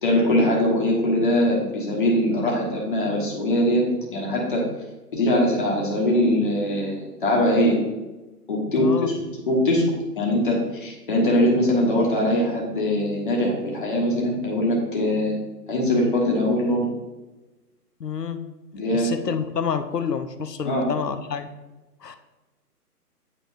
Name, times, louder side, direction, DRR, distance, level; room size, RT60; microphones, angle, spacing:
voice 1, 0.0-4.6 5.1-7.8 8.5-15.4 15.7-16.9 18.7-19.1 20.6-20.8, left 1 dB, 30° left, -2 dB, 1.3 m, -22 dB
voice 2, 8.7-9.1 18.0-18.5 18.9-21.5 22.0-22.2, left 6 dB, 80° left, 10 dB, 0.7 m, -28 dB
8.7 x 4.3 x 2.6 m, 1.1 s
figure-of-eight pair, 140°, 48 cm